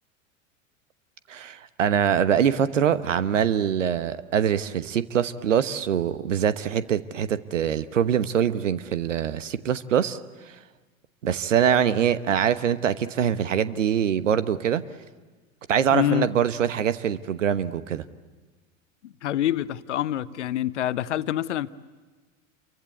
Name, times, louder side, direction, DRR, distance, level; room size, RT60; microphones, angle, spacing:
voice 1, 1.3-10.2 11.2-14.8 15.7-18.0, right 8 dB, 65° right, 1.1 m, -24 dB
voice 2, 15.9-16.3 19.0-21.7, left 12 dB, 60° left, 0.8 m, -26 dB
28.5 x 23.5 x 8.2 m
figure-of-eight pair, 85°, 40 cm